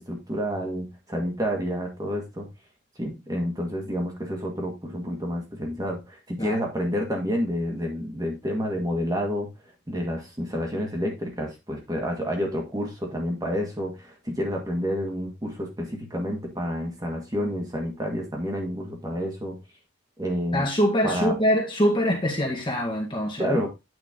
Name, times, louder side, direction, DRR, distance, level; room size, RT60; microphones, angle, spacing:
voice 1, 0.0-2.5 3.0-9.5 9.9-19.6 20.2-20.6 21.0-21.4 23.4-23.7, equal, 20° right, 1.9 m, -29 dB
voice 2, 20.5-23.6, equal, 25° left, 1.9 m, -24 dB
9.3 x 4.9 x 3.7 m
head